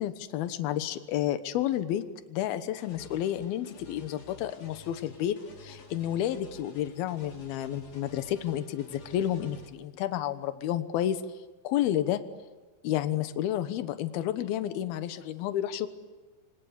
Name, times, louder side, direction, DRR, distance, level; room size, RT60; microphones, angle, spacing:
voice 1, 0.0-11.2 11.6-12.2 12.8-15.9, left 11 dB, 70° left, 10 dB, 2.4 m, -31 dB
sound 1, 2.8-9.7, left 2 dB, 35° left, 4.4 m, -51 dB
27.5 x 25.5 x 8.3 m, 1.3 s
omnidirectional pair, 5.9 m